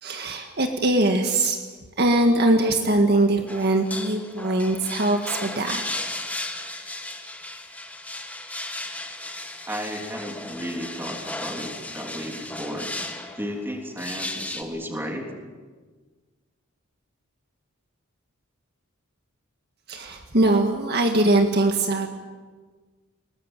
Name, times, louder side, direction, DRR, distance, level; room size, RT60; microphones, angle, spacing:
voice 1, 0.0-1.6 2.0-6.0 19.9-22.1, right 2 dB, 50° right, 4 dB, 1.8 m, -21 dB
sound 1, 3.5-14.6, left 2 dB, 5° left, 1.8 m, -35 dB
voice 2, 9.7-12.9 13.4-15.3, equal, 10° right, 1 dB, 3.5 m, -33 dB
22.5 x 20.0 x 9.1 m, 1.4 s
head